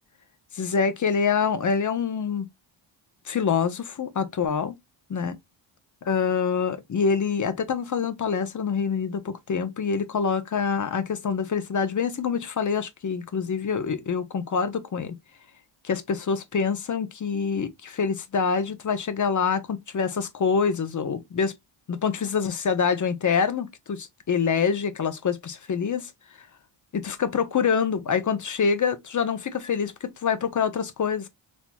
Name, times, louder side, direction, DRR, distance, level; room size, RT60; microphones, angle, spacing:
voice 1, 0.5-2.5 3.3-4.8 5.1-5.4 6.1-15.2 15.8-21.5 21.9-26.1 26.9-31.3, left 6 dB, 35° left, 0.8 m, -26 dB
4.4 x 2.9 x 2.2 m
cardioid pair, 75°, 50 cm